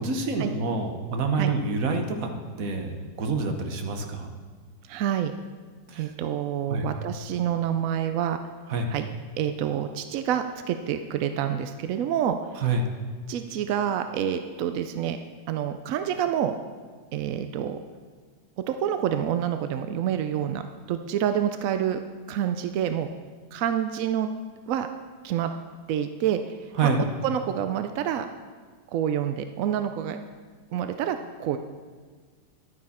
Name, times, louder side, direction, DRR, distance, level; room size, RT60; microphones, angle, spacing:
voice 1, 0.0-2.3 2.6-4.3 5.9-6.1 6.7-6.9 8.7-8.9 12.6-12.9 26.8-27.0, right 3 dB, 55° right, 5 dB, 1.3 m, -27 dB
voice 2, 4.9-5.3 6.0-8.4 8.9-9.1 9.4-12.4 13.3-15.2 15.5-16.5 17.1-17.8 18.6-20.6 20.9-22.0 22.3-23.1 23.5-24.3 24.7-24.9 25.2-25.5 25.9-26.5 26.8-26.9 27.2-28.3 28.9-30.2 30.7-31.6, right 9 dB, 75° right, 8 dB, 0.8 m, -27 dB
11.0 x 9.3 x 4.2 m, 1.5 s
omnidirectional pair, 1.9 m